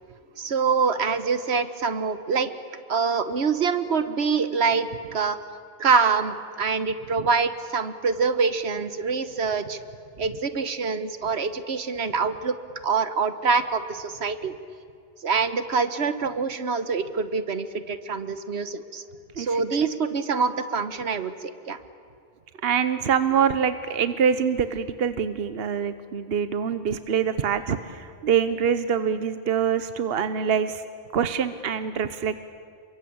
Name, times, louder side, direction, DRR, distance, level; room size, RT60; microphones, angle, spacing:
voice 1, 0.4-2.5 2.9-5.4 5.8-9.8 10.2-12.5 12.8-14.5 15.2-19.0 19.4-21.8, right 5 dB, 90° right, 11 dB, 1.5 m, -25 dB
voice 2, 22.6-30.8 31.1-32.4, right 7 dB, 70° right, 12 dB, 1.1 m, -25 dB
28.0 x 23.5 x 8.7 m, 2.3 s
omnidirectional pair, 1.1 m